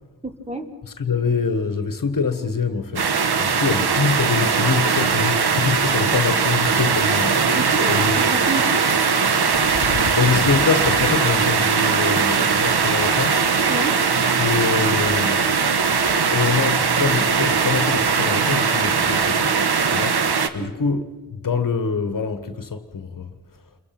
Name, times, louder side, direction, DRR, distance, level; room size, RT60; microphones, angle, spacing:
voice 1, 0.2-0.7 7.5-8.9 13.7-14.0 20.6-20.7, right 2 dB, 15° right, 2.6 m, -29 dB
voice 2, 0.8-3.1 3.4-7.6 7.9-8.2 9.8-13.4 14.4-15.5 16.3-20.3 20.5-23.3, left 5 dB, 55° left, 1.6 m, -24 dB
sound 1, 3.0-20.5, right 5 dB, 70° right, 1.5 m, -20 dB
28.5 x 23.0 x 6.0 m
wide cardioid pair, 120°, 40 cm